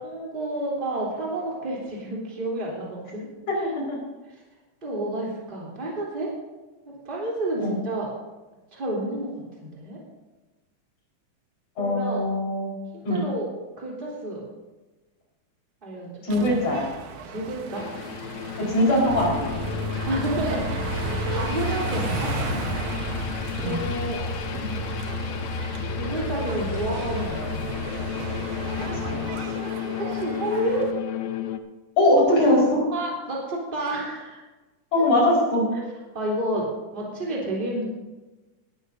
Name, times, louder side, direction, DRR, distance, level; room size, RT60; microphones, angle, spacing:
voice 1, 0.0-3.3 4.8-6.3 7.1-8.1 8.7-9.3 9.6-10.0 11.8-12.2 12.9-13.5 13.8-14.4 15.8-16.2 17.2-17.9 20.1-22.4 23.6-24.2 24.6-24.8 25.1-25.3 25.9-27.8 28.3-28.5 28.9-29.0 30.0-30.9 32.9-34.4 35.7-35.8 36.1-36.7 36.9-37.8, right 1 dB, 15° right, -5 dB, 3.3 m, -30 dB
voice 2, 11.8-12.7 13.1-13.2 16.2-16.9 18.7-19.6 23.6-23.8 28.9-29.3 32.0-32.9 34.9-35.7, left 1 dB, 50° left, -3 dB, 5.8 m, -21 dB
sound 1, 16.3-30.9, right 4 dB, 60° right, 2.0 m, -35 dB
sound 2, 17.7-31.6, left 9 dB, 75° left, 1.9 m, -34 dB
sound 3, 19.1-29.3, left 1 dB, 20° left, 6.1 m, -32 dB
20.0 x 13.0 x 2.7 m, 1.1 s
omnidirectional pair, 3.7 m